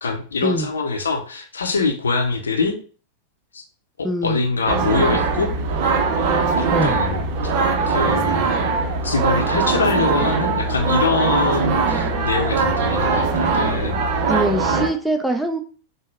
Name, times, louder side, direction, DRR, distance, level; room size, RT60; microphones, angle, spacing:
voice 1, 0.0-2.8 3.5-3.6 4.0-5.5 6.6-7.6 7.9-8.5 9.0-14.0, left 4 dB, 70° left, 5 dB, 0.6 m, -23 dB
voice 2, 4.0-4.4 6.7-7.0 14.3-15.6, right 1 dB, 5° right, 5 dB, 0.5 m, -23 dB
sound 1, 4.7-14.9, right 4 dB, 45° right, 0.6 m, -21 dB
5.3 x 2.1 x 3.3 m, 0.39 s
figure-of-eight pair, 90°, 0 cm